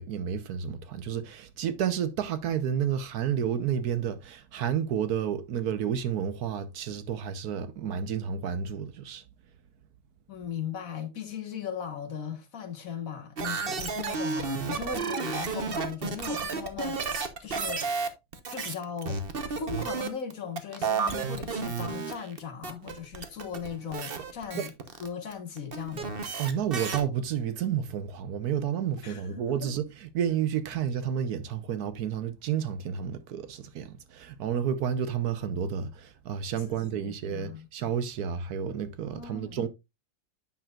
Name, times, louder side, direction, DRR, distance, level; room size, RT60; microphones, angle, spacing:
voice 1, 0.0-9.2 24.5-24.6 26.4-39.7, right 8 dB, 70° right, 1.3 m, -31 dB
voice 2, 10.3-17.9 18.5-19.2 19.6-24.7 25.0-26.1 29.0-29.7 36.6-37.7 39.1-39.7, left 7 dB, 55° left, 1.7 m, -38 dB
sound 1, 13.4-27.0, right 5 dB, 40° right, 1.0 m, -32 dB
9.0 x 6.0 x 2.4 m
omnidirectional pair, 1.7 m